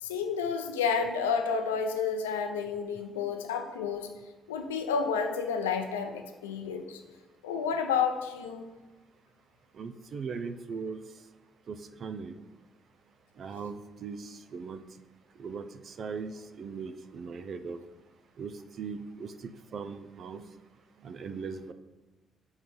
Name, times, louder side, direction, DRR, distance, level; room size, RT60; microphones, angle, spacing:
voice 1, 0.0-4.1 4.5-7.0 7.4-8.7, left 6 dB, 90° left, 6 dB, 0.5 m, -30 dB
voice 2, 9.8-11.0 11.7-12.4 13.4-14.8 15.4-17.8 18.4-20.4 21.0-21.7, right 5 dB, 55° right, 9 dB, 0.5 m, -39 dB
5.8 x 3.9 x 6.0 m, 1.2 s
hypercardioid pair, 45°, 0 cm